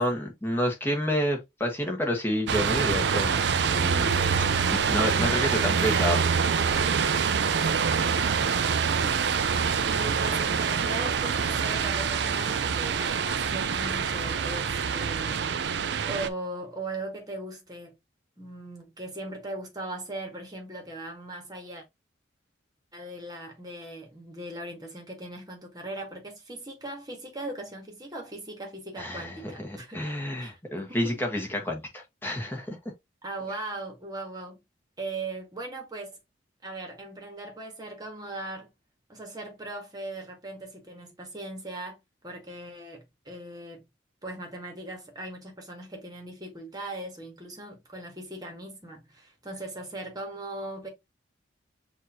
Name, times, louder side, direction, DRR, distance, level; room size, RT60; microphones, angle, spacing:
voice 1, 0.0-3.4 3.7-4.1 4.4-6.3 29.0-32.8, equal, 10° left, 1.2 m, -29 dB
sound 1, 2.5-16.3, right 6 dB, 60° right, 0.4 m, -25 dB
voice 2, 8.1-8.5 8.9-9.5 9.8-17.9 18.4-21.8 22.9-30.1 30.4-30.6 30.9-31.2 33.2-34.6 35.0-36.2 36.6-38.7 39.1-43.9 44.2-50.9, right 2 dB, 20° right, 1.3 m, -39 dB
6.4 x 2.6 x 2.8 m
head